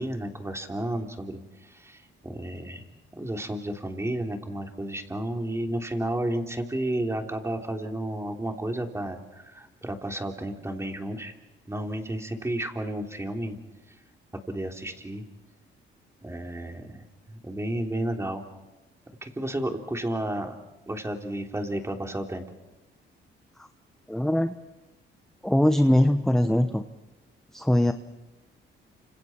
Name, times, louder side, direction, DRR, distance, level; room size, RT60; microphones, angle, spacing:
voice 1, 0.0-2.9 3.1-11.3 11.7-13.6 14.5-15.2 16.2-18.4 19.2-20.5 20.9-22.4, right 1 dB, 15° right, 3 dB, 3.4 m, -32 dB
voice 2, 24.1-24.5 25.4-26.8 27.5-27.9, left 1 dB, ahead, 8 dB, 1.0 m, -21 dB
30.0 x 27.0 x 4.5 m, 1.1 s
cardioid pair, 90°, 20 cm